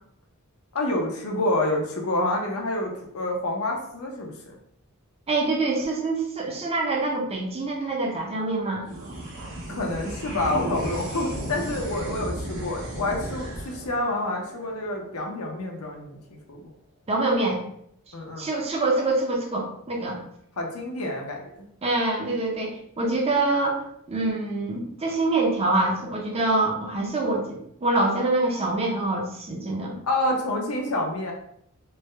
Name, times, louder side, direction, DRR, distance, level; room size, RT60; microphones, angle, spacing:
voice 1, 0.7-4.5 9.7-16.2 16.5-16.6 18.1-18.5 20.6-21.4 30.0-31.3, left 1 dB, 70° left, 0 dB, 0.7 m, -28 dB
voice 2, 5.3-8.8 17.1-17.6 18.4-20.2 21.8-23.8 24.1-30.0, right 2 dB, 30° right, -1 dB, 0.6 m, -25 dB
sound 1, 8.8-15.6, right 1 dB, 60° right, 1.2 m, -35 dB
3.4 x 2.2 x 3.2 m, 0.71 s
head